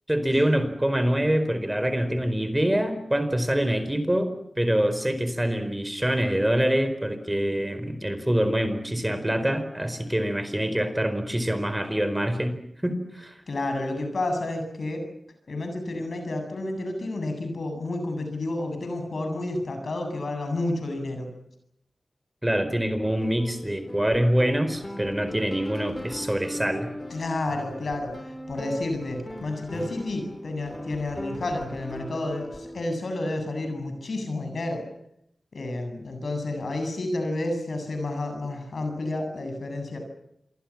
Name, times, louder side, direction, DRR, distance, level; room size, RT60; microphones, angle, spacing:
voice 1, 0.1-12.6 12.8-13.4 22.4-26.9, right 1 dB, 15° right, 10 dB, 4.7 m, -25 dB
voice 2, 13.5-15.0 15.5-21.3 27.1-28.1 28.5-34.8 35.5-40.0, left 2 dB, 70° left, 6 dB, 7.9 m, -30 dB
sound 1, 23.0-32.8, equal, 20° left, 3.3 m, -39 dB
27.5 x 23.5 x 7.5 m, 0.77 s
cardioid pair, 45°, 0 cm